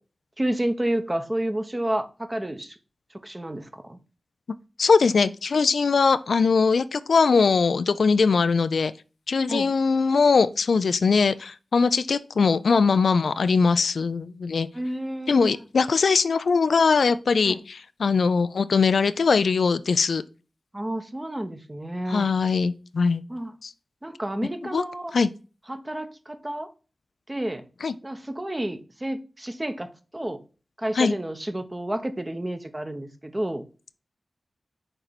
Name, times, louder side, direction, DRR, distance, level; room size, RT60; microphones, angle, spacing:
voice 1, 0.4-2.8 3.2-4.0 9.5-9.7 14.7-15.6 17.4-17.6 20.7-22.3 23.3-23.5 24.0-25.1 25.7-26.7 27.3-27.7 28.0-30.4 30.8-33.6, right 1 dB, 20° right, 0.9 m, -30 dB
voice 2, 4.8-8.9 9.3-14.7 15.3-20.2 22.1-23.2 23.6-23.7 24.7-24.8 25.1-25.3 27.8-27.9 31.0-31.2, left 5 dB, 80° left, 0.4 m, -21 dB
6.6 x 4.4 x 4.1 m
wide cardioid pair, 100°, 0 cm